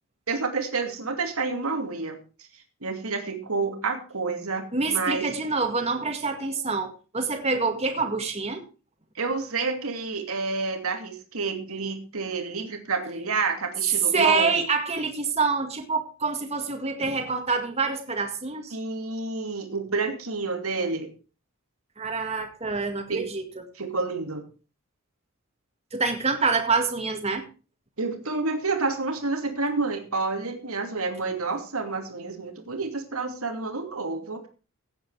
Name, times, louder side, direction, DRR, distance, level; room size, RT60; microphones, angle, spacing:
voice 1, 0.3-2.2 2.8-5.3 9.1-14.6 18.7-21.1 23.1-23.3 23.7-24.4 28.0-34.5, right 4 dB, 90° right, 5 dB, 2.7 m, -29 dB
voice 2, 4.7-8.6 14.1-18.8 22.0-23.4 25.9-27.4, right 4 dB, 30° right, 4 dB, 2.0 m, -26 dB
16.0 x 8.3 x 4.8 m, 0.34 s
head